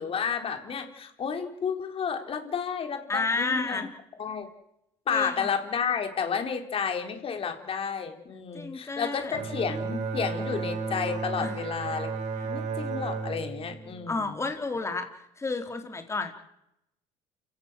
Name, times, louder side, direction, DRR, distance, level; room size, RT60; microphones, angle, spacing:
voice 1, 0.0-3.9 4.2-4.5 5.1-12.1 12.4-14.5, left 6 dB, 40° left, 6 dB, 4.2 m, -31 dB
voice 2, 3.1-3.9 5.1-5.5 8.5-9.4 11.4-11.6 14.1-15.1 15.4-16.3, left 3 dB, 20° left, 6 dB, 4.0 m, -31 dB
Bowed string instrument, 9.3-14.8, right 4 dB, 55° right, 3.4 m, -34 dB
29.0 x 17.0 x 7.7 m, 0.81 s
cardioid pair, 105°, 14 cm